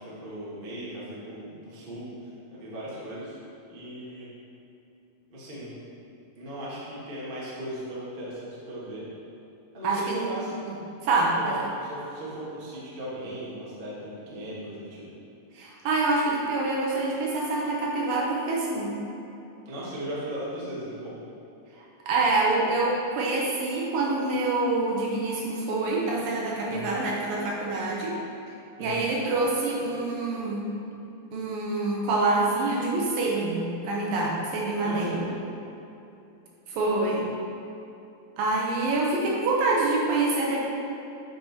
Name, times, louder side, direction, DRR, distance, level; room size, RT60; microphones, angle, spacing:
voice 1, 0.0-2.1 2.5-3.4 3.6-4.3 5.3-5.7 6.4-9.1 9.7-10.6 11.4-15.0 19.6-21.2 26.7-27.0 28.8-29.0 34.8-35.2, right 1 dB, 35° right, -8 dB, 0.8 m, -37 dB
voice 2, 9.8-10.3 11.0-11.6 15.6-18.9 22.1-28.2 28.8-30.7 31.3-35.2 36.7-37.3 38.4-40.6, right 2 dB, 70° right, -3 dB, 2.5 m, -26 dB
9.0 x 5.4 x 4.3 m, 2.8 s
omnidirectional pair, 4.4 m